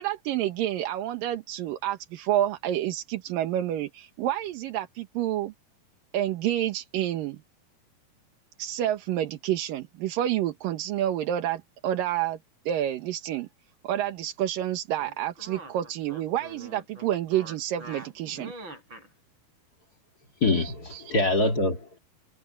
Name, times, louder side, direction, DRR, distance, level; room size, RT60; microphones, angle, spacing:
voice 1, 0.0-5.5 6.1-7.4 8.6-12.4 12.7-13.5 13.8-18.5 20.5-21.1, right 12 dB, 70° right, 2.8 m, -29 dB
sound 1, 15.0-19.1, right 1 dB, 30° right, 8.6 m, -44 dB
voice 2, 20.4-22.0, left 2 dB, 35° left, 1.6 m, -24 dB
omnidirectional pair, 4.3 m